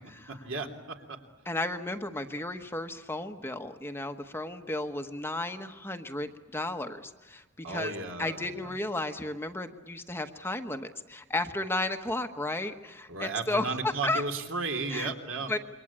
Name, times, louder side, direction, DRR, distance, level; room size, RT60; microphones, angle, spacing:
voice 1, 0.3-1.2 7.6-8.7 13.1-15.5, right 3 dB, 65° right, 4 dB, 3.2 m, -34 dB
voice 2, 1.4-7.9 8.2-14.2 14.9-15.1 15.5-15.6, left 2 dB, 10° left, 6 dB, 1.1 m, -33 dB
27.5 x 23.5 x 8.7 m, 1.2 s
head